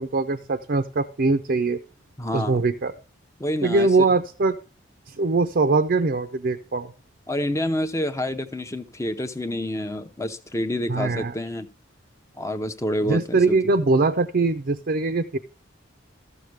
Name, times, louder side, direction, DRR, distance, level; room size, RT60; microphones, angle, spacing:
voice 1, 0.0-1.8 2.3-2.9 3.6-4.6 5.1-6.9 10.9-11.3 13.1-15.4, right 3 dB, 55° right, 0.6 m, -22 dB
voice 2, 2.2-2.6 3.4-4.1 7.3-11.7 12.4-13.6, left 1 dB, 15° left, 0.7 m, -28 dB
13.5 x 6.6 x 3.3 m
head